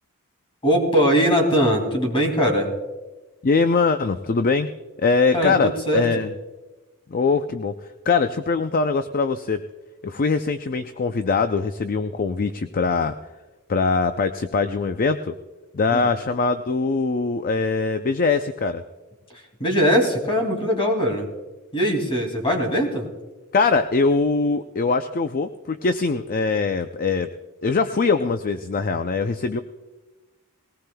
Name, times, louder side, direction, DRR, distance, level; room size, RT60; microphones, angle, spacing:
voice 1, 0.6-2.7 5.3-6.0 15.9-16.1 19.3-21.3 21.7-23.1, equal, 25° left, 2 dB, 2.6 m, -21 dB
voice 2, 3.4-4.7 5.0-6.3 7.1-7.7 8.1-9.6 10.0-13.2 13.7-15.3 15.7-18.8 23.5-27.3 27.6-29.6, left 4 dB, 40° left, 9 dB, 0.5 m, -22 dB
20.0 x 18.0 x 2.3 m, 1.2 s
head